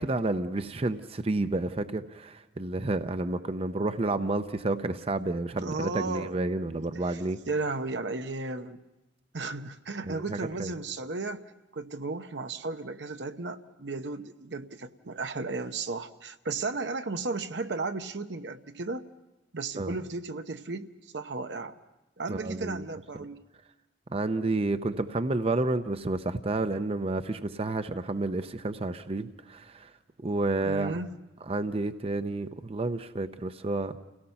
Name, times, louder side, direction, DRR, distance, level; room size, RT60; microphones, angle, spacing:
voice 1, 0.0-7.4 10.1-10.7 19.8-20.0 22.3-22.8 24.1-29.9 30.2-31.0 31.5-34.0, right 2 dB, 35° right, 10 dB, 0.6 m, -30 dB
voice 2, 5.6-6.3 6.6-7.2 7.5-8.8 9.3-19.1 19.5-20.9 21.1-21.8 22.2-23.4 30.6-31.2, right 3 dB, 75° right, 8 dB, 0.9 m, -34 dB
29.0 x 17.5 x 5.7 m, 0.99 s
head